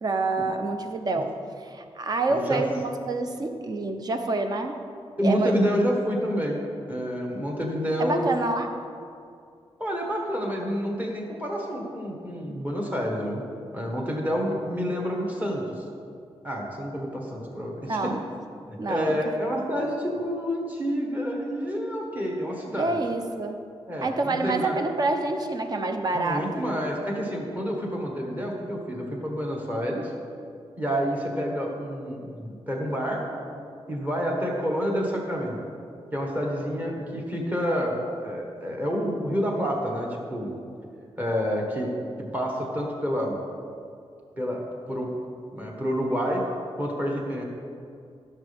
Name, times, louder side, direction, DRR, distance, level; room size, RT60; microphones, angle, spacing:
voice 1, 0.0-1.3 1.6-2.8 3.1-4.8 5.2-5.7 8.0-8.7 17.9-18.2 18.8-19.2 22.7-23.5 24.0-26.7 40.4-40.7, right 2 dB, 40° right, 6 dB, 0.7 m, -27 dB
voice 2, 2.3-2.6 5.2-6.6 6.9-8.3 9.8-13.4 13.7-15.8 16.4-18.1 18.7-23.0 23.9-24.8 26.1-30.1 30.8-33.4 33.9-35.6 36.1-40.5 41.2-41.9 42.2-43.4 44.4-45.1 45.5-46.4 46.8-47.4, equal, 15° right, -1 dB, 1.5 m, -28 dB
15.0 x 6.8 x 3.5 m, 2.4 s
wide cardioid pair, 170°, 10 cm